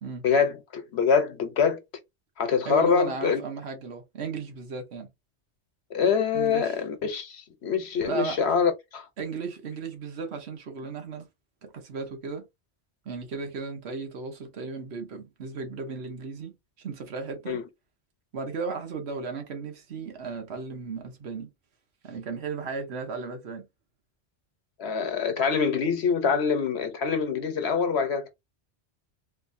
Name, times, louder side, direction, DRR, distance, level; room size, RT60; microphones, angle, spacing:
voice 1, 0.2-1.8 2.4-3.4 5.9-9.1 17.5-17.6 24.8-28.3, left 6 dB, 70° left, 1.1 m, -25 dB
voice 2, 2.6-5.1 6.3-6.8 8.0-8.4 9.2-11.3 11.6-12.5 13.0-17.6 18.3-21.5 22.0-23.7, right 4 dB, 65° right, 1.3 m, -35 dB
4.2 x 2.7 x 2.6 m
omnidirectional pair, 1.2 m